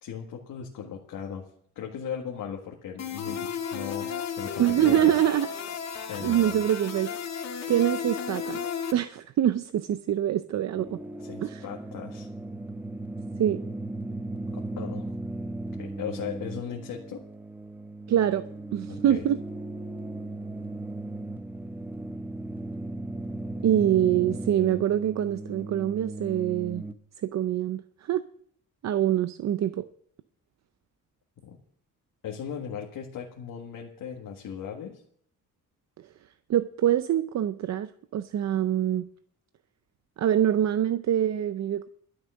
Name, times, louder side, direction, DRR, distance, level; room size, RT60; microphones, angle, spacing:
voice 1, 0.0-1.5 1.8-5.1 6.1-6.6 11.2-12.3 14.5-15.2 15.8-17.2 18.9-19.2 23.5-23.7 31.4-31.6 32.2-35.0, left 8 dB, 75° left, 0 dB, 1.8 m, -37 dB
sound 1, 3.0-8.9, left 7 dB, 50° left, 2.2 m, -34 dB
voice 2, 4.6-5.5 6.2-7.1 7.7-11.0 11.4-11.6 13.4-13.6 18.1-18.4 18.7-19.4 23.6-26.8 27.2-28.2 28.8-29.8 36.5-39.1 40.2-41.9, right 11 dB, 55° right, 12 dB, 0.5 m, -25 dB
sound 2, 10.7-26.9, right 2 dB, 5° right, 0.7 m, -37 dB
12.5 x 6.6 x 9.6 m, 0.64 s
cardioid pair, 150°, 33 cm